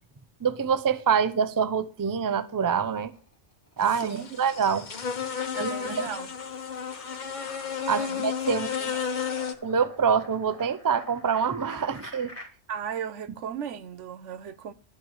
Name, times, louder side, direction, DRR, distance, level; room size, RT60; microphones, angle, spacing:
voice 1, 0.4-3.1 3.8-4.9 5.6-5.9 7.9-8.9 9.6-12.3, right 6 dB, 30° right, 0.4 m, -26 dB
sound 1, 2.5-3.3 3.7-12.5, left 1 dB, 10° left, 2.0 m, -48 dB
sound 2, 3.8-9.5, left 7 dB, 45° left, 1.0 m, -32 dB
voice 2, 4.0-4.4 5.5-6.3 7.9-8.6 12.7-14.7, right 8 dB, 80° right, 1.1 m, -36 dB
11.5 x 4.3 x 7.8 m
omnidirectional pair, 1.2 m